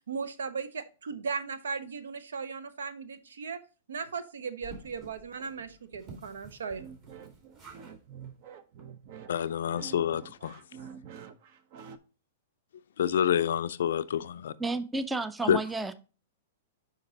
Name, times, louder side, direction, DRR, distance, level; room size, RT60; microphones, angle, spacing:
voice 1, 0.1-3.6 3.9-6.8, right 5 dB, 85° right, 0.7 m, -37 dB
sound 1, 4.6-8.0 8.2-8.3 8.8-8.9 9.1-9.2, right 2 dB, 35° right, 2.5 m, -51 dB
sound 2, 6.8-12.0, right 7 dB, 50° right, 0.7 m, -47 dB
voice 2, 9.3-10.6 13.0-14.5 15.4-15.6, left 9 dB, 75° left, 0.3 m, -28 dB
voice 3, 14.6-15.9, right 3 dB, 10° right, 0.4 m, -31 dB
5.3 x 5.1 x 3.9 m
hypercardioid pair, 130°, 0 cm